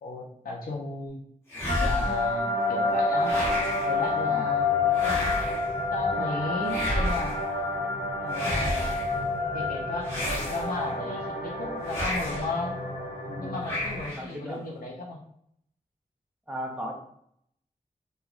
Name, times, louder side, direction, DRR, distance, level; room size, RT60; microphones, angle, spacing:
voice 1, 0.0-1.2 1.8-3.4 3.9-4.7 5.0-5.4 5.9-7.4 8.2-9.0 9.5-12.8 13.4-15.2, left 3 dB, 90° left, -2 dB, 0.5 m, -35 dB
sound 1, 1.5-2.3 3.2-4.0 4.9-5.7 6.7-7.5 8.3-9.1 10.0-10.9 11.9-12.5 13.6-14.3, equal, 15° left, 1.0 m, -31 dB
sound 2, 1.7-10.0, left 4 dB, 65° right, 0.8 m, -28 dB
sound 3, 2.0-14.0, right 1 dB, 70° left, 0.8 m, -34 dB
voice 2, 13.3-13.6 14.1-14.6 16.5-16.9, equal, 10° right, 0 dB, 0.6 m, -36 dB
3.0 x 2.2 x 2.4 m, 0.70 s
wide cardioid pair, 90°, 15 cm